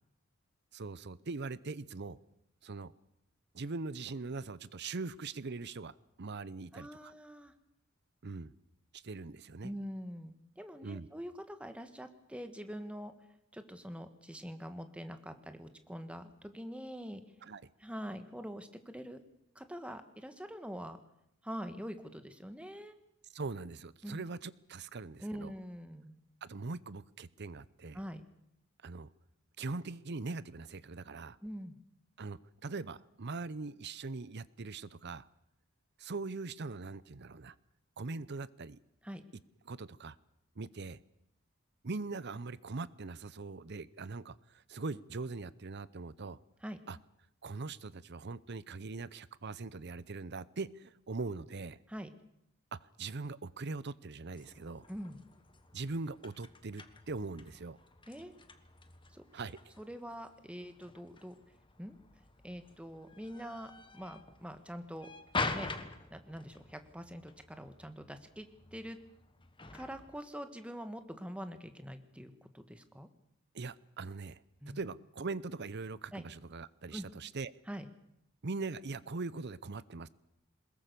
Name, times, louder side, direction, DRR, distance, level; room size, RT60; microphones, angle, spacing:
voice 1, 0.7-2.2 2.6-2.9 3.5-7.1 8.2-8.5 8.9-9.7 10.8-11.1 17.4-17.6 23.3-25.5 26.4-28.0 28.8-29.1 29.6-31.4 32.2-35.3 36.0-37.5 38.0-38.8 39.7-40.2 40.6-41.0 41.8-46.4 46.9-47.0 47.4-51.8 52.7-54.8 55.7-57.8 59.3-59.6 73.5-77.5 78.4-80.1, right 3 dB, 55° right, 18 dB, 0.8 m, -41 dB
voice 2, 6.7-7.5 9.6-13.1 13.5-17.2 17.8-19.2 19.5-21.0 21.4-22.9 24.0-24.2 25.2-26.2 27.9-28.2 31.4-31.8 39.0-39.2 46.6-46.8 51.9-52.1 54.9-55.2 58.1-58.3 59.1-59.4 59.8-61.4 61.8-62.0 62.4-65.1 65.3-65.7 66.1-69.0 69.7-73.1 74.6-74.8 76.1-76.2 76.9-77.1 77.7-77.9, equal, 5° right, 8 dB, 1.5 m, -44 dB
sound 1, 54.3-70.2, left 3 dB, 25° left, 1.4 m, -45 dB
22.0 x 21.0 x 6.9 m, 0.81 s
head